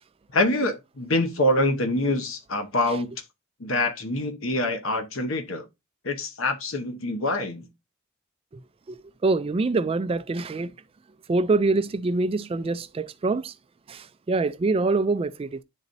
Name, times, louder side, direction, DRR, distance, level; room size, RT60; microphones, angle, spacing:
voice 1, 0.3-3.1 3.6-5.6 6.0-7.6, left 1 dB, 75° left, 1.0 m, -25 dB
voice 2, 8.9-10.7 11.3-13.5 13.9-15.6, right 3 dB, 25° right, 0.3 m, -25 dB
10.5 x 4.0 x 2.6 m
head